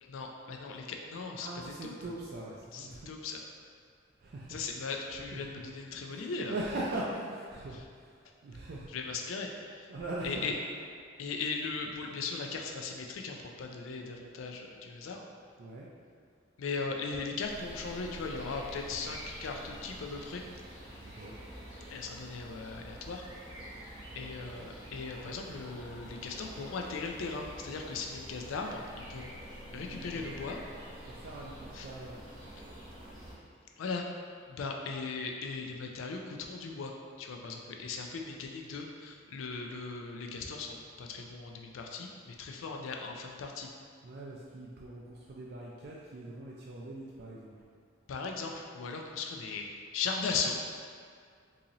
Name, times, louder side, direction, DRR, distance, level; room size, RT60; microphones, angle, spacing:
voice 1, 0.0-1.9 2.7-3.4 4.5-6.5 7.7-7.8 8.9-9.9 10.2-10.5 11.2-15.2 16.6-20.4 21.9-23.2 24.1-29.4 29.7-30.6 31.7-31.9 33.8-34.1 34.5-36.9 37.2-43.7 48.1-50.5, left 4 dB, 85° left, 2 dB, 0.4 m, -38 dB
voice 2, 1.4-3.1 4.2-4.6 5.5-5.6 6.1-7.8 8.4-8.9 9.9-10.5 15.6-15.9 21.0-21.4 29.7-30.4 31.0-32.1 44.0-47.5, right 2 dB, 55° right, -4 dB, 0.3 m, -41 dB
sound 1, 17.4-33.3, right 1 dB, 25° right, 0.8 m, -47 dB
3.8 x 2.7 x 2.9 m, 2.1 s
head